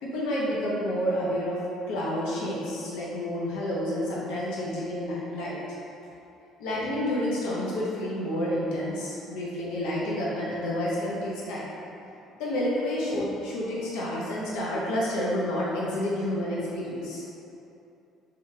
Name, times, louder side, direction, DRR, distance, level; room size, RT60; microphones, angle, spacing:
voice 1, 0.0-1.6 1.9-5.6 6.6-11.7 12.4-17.3, left 1 dB, 85° left, -6 dB, 0.8 m, -29 dB
3.9 x 3.2 x 3.6 m, 2.8 s
cardioid pair, 130°, 0 cm